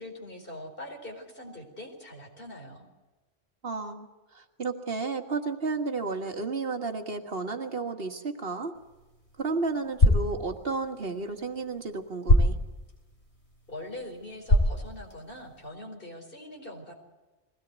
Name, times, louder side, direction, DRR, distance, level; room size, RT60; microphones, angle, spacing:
voice 1, 0.0-2.9 13.7-17.0, left 1 dB, 55° left, 2 dB, 4.7 m, -42 dB
voice 2, 3.6-4.1 4.3-8.7 9.4-12.5, right 3 dB, 60° right, 5 dB, 1.8 m, -32 dB
sound 1, 8.7-15.7, left 1 dB, 80° left, 6.6 m, -28 dB
22.0 x 17.5 x 8.2 m, 1.2 s
omnidirectional pair, 1.1 m